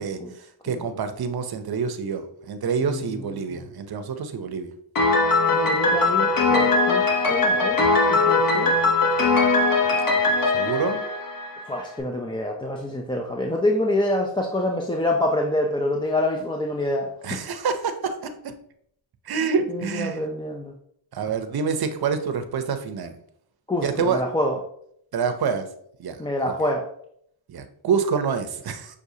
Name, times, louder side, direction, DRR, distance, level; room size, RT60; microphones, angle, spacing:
voice 1, 0.0-4.7 10.5-11.0 17.2-18.5 19.3-20.3 21.1-23.2 23.8-24.2 25.1-25.7 26.0-26.2 26.4-26.5 27.5-29.0, right 6 dB, 50° right, 8 dB, 0.7 m, -27 dB
voice 2, 3.4-3.7 5.5-7.8 8.1-8.8 11.7-17.1 19.7-20.7 23.7-24.6 26.2-26.9, left 1 dB, 10° left, 2 dB, 0.4 m, -26 dB
Piano, 5.0-11.8, left 3 dB, 45° left, 0.9 m, -20 dB
6.1 x 2.3 x 2.7 m, 0.70 s
cardioid pair, 55°, 50 cm